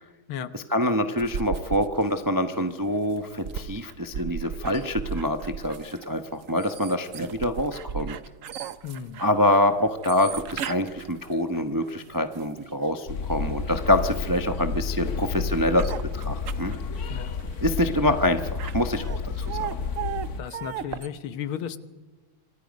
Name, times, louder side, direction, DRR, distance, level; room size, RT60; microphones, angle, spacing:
voice 1, 0.5-8.2 9.2-16.7 17.6-19.7, left 1 dB, 30° right, 7 dB, 0.3 m, -25 dB
sound 1, 1.2-12.9 13.4-21.1, right 8 dB, 60° right, 0.9 m, -37 dB
voice 2, 8.8-9.2 17.1-17.3 20.4-21.8, left 8 dB, 80° left, 12 dB, 1.8 m, -34 dB
sound 2, 13.1-20.4, left 5 dB, 50° left, 1.5 m, -31 dB
26.5 x 26.0 x 5.3 m, 1.2 s
omnidirectional pair, 2.3 m